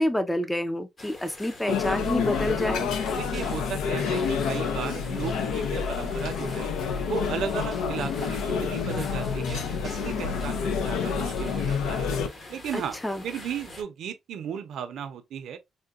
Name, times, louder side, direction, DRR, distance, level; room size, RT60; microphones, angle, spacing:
voice 1, 0.0-2.9 12.7-13.2, left 1 dB, 5° left, 0.4 m, -28 dB
sound 1, 1.0-13.8, left 2 dB, 30° left, 0.8 m, -45 dB
sound 2, 1.7-12.3, left 6 dB, 85° left, 0.5 m, -28 dB
voice 2, 3.2-6.7 7.1-12.1 12.5-13.0 13.2-15.6, right 8 dB, 70° right, 0.5 m, -35 dB
3.7 x 2.1 x 2.4 m
cardioid pair, 125°, 0 cm